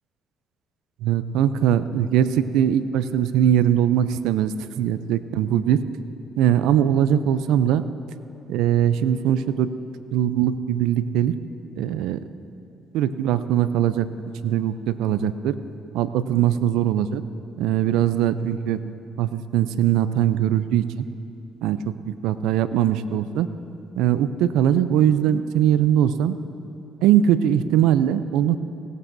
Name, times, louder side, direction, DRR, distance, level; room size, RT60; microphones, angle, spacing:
voice 1, 1.0-5.8 6.4-7.8 8.5-9.7 10.1-11.3 11.8-12.2 12.9-14.1 14.4-15.6 15.9-17.2 17.6-18.8 19.2-21.1 21.6-21.9 22.2-23.5 24.0-26.4 27.0-28.6, right 10 dB, 80° right, 13 dB, 0.4 m, -21 dB
20.0 x 17.0 x 2.7 m, 2.7 s
supercardioid pair, 65°, 0 cm